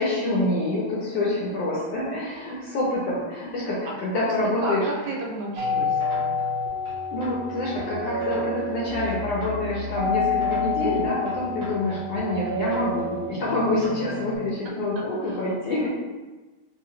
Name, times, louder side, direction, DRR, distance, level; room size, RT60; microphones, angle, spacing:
voice 1, 0.0-4.8 7.1-15.9, left 2 dB, 70° left, -5 dB, 1.6 m, -26 dB
voice 2, 4.6-6.4 11.9-12.0 15.0-15.4 15.8-15.9, right 2 dB, 80° right, -1 dB, 2.0 m, -34 dB
sound 1, 5.6-14.4, left 3 dB, 60° right, 1.2 m, -29 dB
4.8 x 2.6 x 3.2 m, 1.2 s
omnidirectional pair, 3.4 m